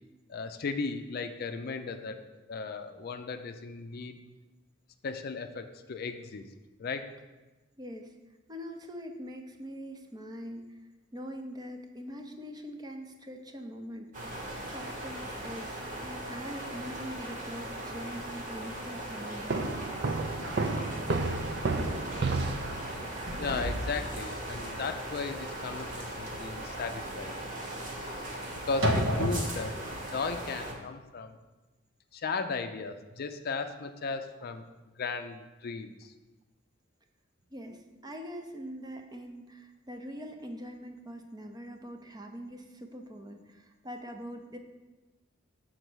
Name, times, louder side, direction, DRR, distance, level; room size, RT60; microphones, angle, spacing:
voice 1, 0.3-4.2 5.0-6.5 6.8-7.1 23.4-27.4 28.1-29.9 30.1-31.4 32.1-34.6 35.0-36.1, left 4 dB, 50° left, 8 dB, 0.4 m, -36 dB
voice 2, 7.8-8.1 8.5-10.8 11.1-19.7 37.5-44.6, equal, 20° right, 4 dB, 0.6 m, -43 dB
sound 1, 14.1-30.7, right 1 dB, 40° right, 1.2 m, -39 dB
sound 2, 19.5-23.2, right 3 dB, 60° right, 0.5 m, -31 dB
sound 3, 21.4-21.6 22.0-22.3 22.6-29.9, equal, 85° right, 1.2 m, -34 dB
6.7 x 3.9 x 6.1 m, 1.2 s
head